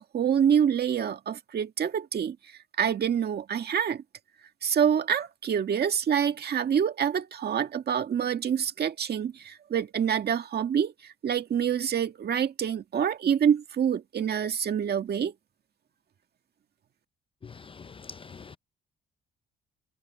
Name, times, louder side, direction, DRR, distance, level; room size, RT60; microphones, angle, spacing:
voice 1, 0.0-2.4 2.8-4.0 4.6-15.3, right 8 dB, 55° right, 1.8 m, -26 dB
voice 2, 17.4-18.6, left 5 dB, 25° left, 0.5 m, -45 dB
cardioid pair, 90°, 20 cm